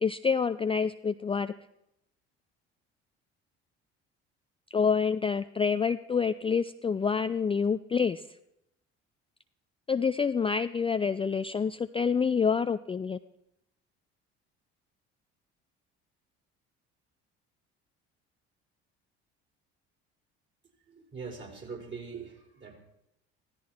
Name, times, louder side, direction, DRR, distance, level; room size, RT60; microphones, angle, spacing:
voice 1, 0.0-1.5 4.7-8.2 9.9-13.2, left 6 dB, 15° left, 11 dB, 0.4 m, -27 dB
voice 2, 20.9-22.8, right 5 dB, 35° right, 1 dB, 4.8 m, -42 dB
15.5 x 13.5 x 4.4 m, 0.82 s
hypercardioid pair, 60°, 33 cm